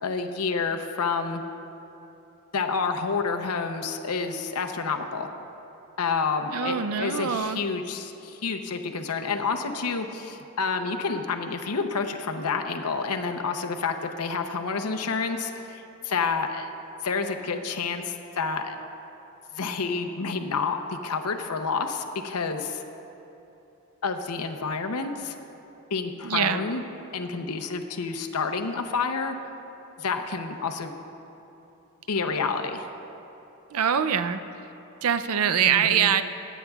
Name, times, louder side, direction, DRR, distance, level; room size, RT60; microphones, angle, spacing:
voice 1, 0.0-1.4 2.5-5.3 6.0-16.7 17.0-18.7 19.5-22.8 24.0-25.3 25.9-26.8 27.1-29.4 30.0-30.9 32.1-32.9 35.7-36.1, left 4 dB, 90° left, 5 dB, 0.7 m, -29 dB
voice 2, 6.5-7.6 26.2-26.6 33.7-34.4 35.0-36.2, right 8 dB, 75° right, 11 dB, 0.5 m, -23 dB
23.5 x 9.1 x 2.4 m, 3.0 s
head